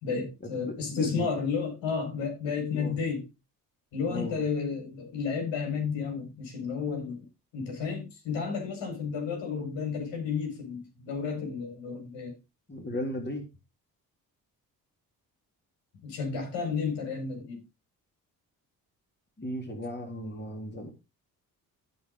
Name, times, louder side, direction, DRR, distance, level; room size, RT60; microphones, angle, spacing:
voice 1, 0.0-3.3 3.9-7.3 7.5-12.4 16.0-17.6, left 5 dB, 70° left, 5.1 m, -32 dB
voice 2, 0.7-1.3 2.7-3.0 4.1-4.4 12.7-13.4 19.4-20.9, left 1 dB, 20° left, 3.4 m, -35 dB
15.0 x 5.6 x 3.9 m
hypercardioid pair, 45°, 46 cm